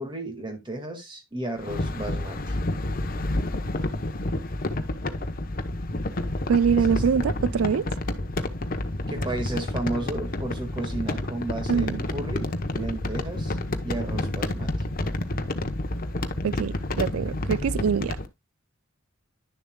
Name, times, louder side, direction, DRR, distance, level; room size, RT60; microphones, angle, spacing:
voice 1, 0.0-2.6 6.9-7.3 9.1-13.6 13.8-14.7, right 2 dB, 20° right, 1.9 m, -33 dB
sound 1, 1.6-18.3, left 1 dB, 45° left, 0.9 m, -29 dB
voice 2, 6.5-7.9 11.7-12.0 16.4-18.2, right 7 dB, 90° right, 0.4 m, -24 dB
11.0 x 7.0 x 2.3 m
head